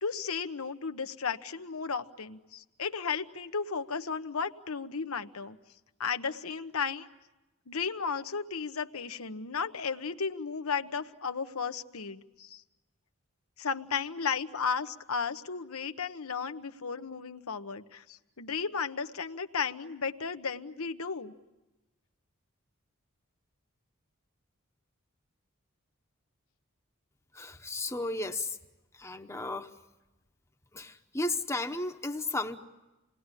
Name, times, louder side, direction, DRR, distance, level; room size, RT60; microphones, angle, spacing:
voice 1, 0.0-5.6 6.0-7.1 7.7-12.6 13.6-21.3, left 5 dB, 90° left, 9 dB, 1.1 m, -34 dB
voice 2, 27.3-28.6 28.9-29.7 30.7-32.6, left 2 dB, 15° left, 6 dB, 0.9 m, -34 dB
28.5 x 20.0 x 9.8 m, 1.1 s
head